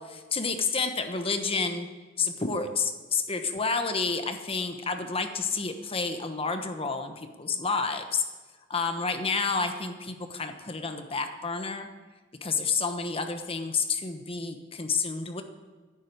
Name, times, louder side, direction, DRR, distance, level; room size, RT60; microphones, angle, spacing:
voice 1, 0.0-1.9 2.2-8.2 8.7-11.9 12.4-15.4, left 4 dB, 30° left, 7 dB, 1.0 m, -30 dB
10.5 x 8.4 x 9.3 m, 1.4 s
head